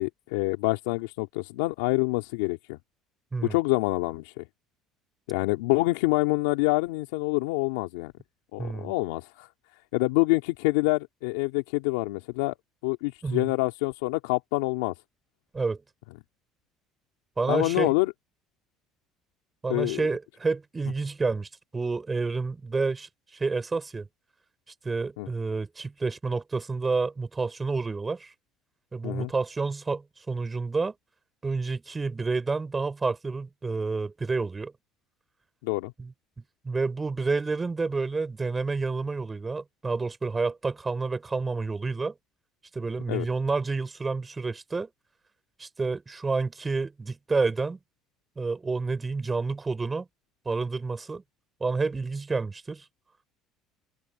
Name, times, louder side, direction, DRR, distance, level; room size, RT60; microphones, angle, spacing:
voice 1, 0.0-2.8 3.5-4.4 5.3-8.1 8.5-9.5 9.9-12.5 12.8-14.9 17.5-18.1 19.7-20.0 25.2-25.3 29.0-29.3 35.6-35.9 43.1-43.3, left 22 dB, 85° left, 2.5 m, -26 dB
voice 2, 8.6-8.9 13.2-13.5 15.5-15.8 17.4-17.9 19.6-24.1 24.8-28.3 28.9-30.9 31.4-34.7 36.0-36.1 36.6-42.1 42.7-44.9 45.6-47.8 48.3-50.1 50.4-51.2 51.6-52.8, right 4 dB, 20° right, 6.8 m, -29 dB
open air
supercardioid pair, 90°, 0 cm